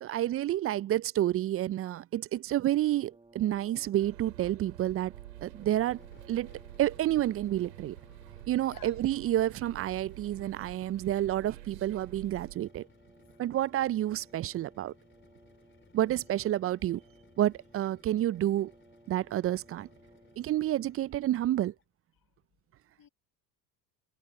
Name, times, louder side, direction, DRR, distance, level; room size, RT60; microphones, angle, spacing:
voice 1, 0.0-5.1 5.4-6.0 6.3-8.0 8.5-12.9 13.4-14.9 15.9-17.0 17.4-18.7 19.1-19.9 20.4-21.7, right 13 dB, 30° right, 0.5 m, -29 dB
Brass instrument, 2.9-20.7, right 2 dB, 10° right, 2.2 m, -60 dB
sound 1, 4.0-12.6, right 17 dB, 75° right, 4.1 m, -49 dB
sound 2, 5.4-21.9, left 5 dB, 25° left, 3.5 m, -62 dB
voice 2, 8.5-8.9 13.3-13.4 16.2-16.3 23.0-23.1, left 10 dB, 45° left, 6.2 m, -56 dB
hypercardioid pair, 70°, 49 cm